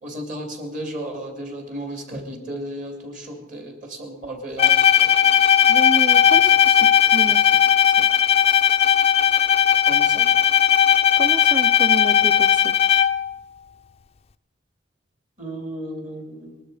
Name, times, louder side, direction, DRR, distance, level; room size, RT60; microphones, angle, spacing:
voice 1, 0.0-5.4 6.4-7.6 9.9-10.3 15.4-16.6, right 1 dB, 40° right, 4 dB, 2.7 m, -35 dB
Bowed string instrument, 4.6-13.3, left 9 dB, 30° left, 0.4 m, -17 dB
voice 2, 5.7-6.4 7.1-7.4 8.0-8.1 11.2-12.7, right 2 dB, 25° right, 12 dB, 0.7 m, -29 dB
20.0 x 12.0 x 5.0 m, 1.0 s
head